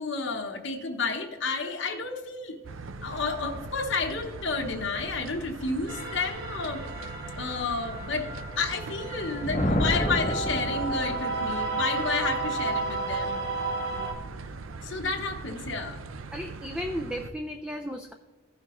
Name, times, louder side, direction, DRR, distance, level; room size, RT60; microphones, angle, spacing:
voice 1, 0.0-2.6 3.0-6.8 7.4-8.3 8.6-13.4 14.8-16.0, left 4 dB, 65° left, 2 dB, 0.9 m, -31 dB
sound 1, 2.6-17.3, right 3 dB, 85° right, 0.6 m, -41 dB
sound 2, 5.9-14.1, right 3 dB, 65° right, 1.4 m, -33 dB
Thunder, 9.1-11.5, left 1 dB, 35° left, 0.7 m, -29 dB
voice 2, 16.3-18.1, equal, 5° right, 4 dB, 0.4 m, -34 dB
15.0 x 5.9 x 3.0 m, 1.3 s
head